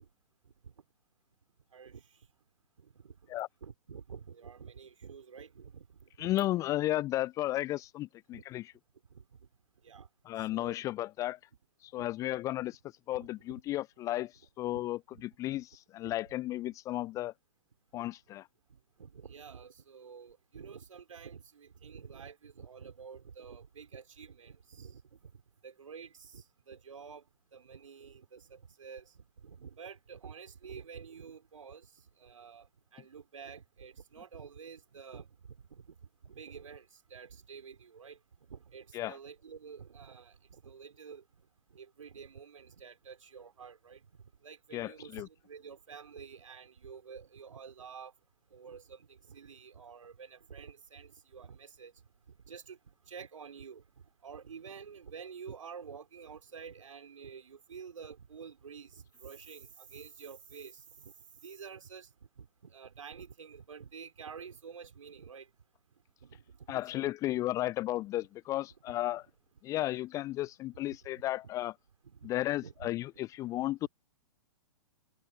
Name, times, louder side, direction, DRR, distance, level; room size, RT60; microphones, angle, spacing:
voice 1, 1.7-2.0 2.8-3.1 3.6-5.9 6.2-6.5 8.3-8.4 9.1-9.2 9.8-10.1 10.4-10.8 12.0-12.1 13.2-13.6 14.7-14.8 15.1-15.2 16.0-16.2 17.9-18.0 19.0-25.3 25.6-27.2 27.5-29.1 29.4-31.9 32.2-32.7 32.9-35.3 35.7-36.0 36.2-36.9 37.1-38.2 38.5-41.2 41.7-44.0 44.4-48.1 48.5-51.9 52.5-52.8 53.1-53.8 54.2-61.1 61.4-62.1 62.4-65.5 66.2-66.4 66.7-67.1 72.0-72.3 72.6-72.9, right 6 dB, 65° right, 5.7 m, -49 dB
voice 2, 6.2-8.7 10.3-11.4 11.8-12.8 13.1-17.3 17.9-18.5 38.9-39.2 44.7-45.3 66.7-69.2 69.6-71.7 72.2-73.9, left 15 dB, 20° left, 0.4 m, -34 dB
figure-of-eight pair, 110°, 18 cm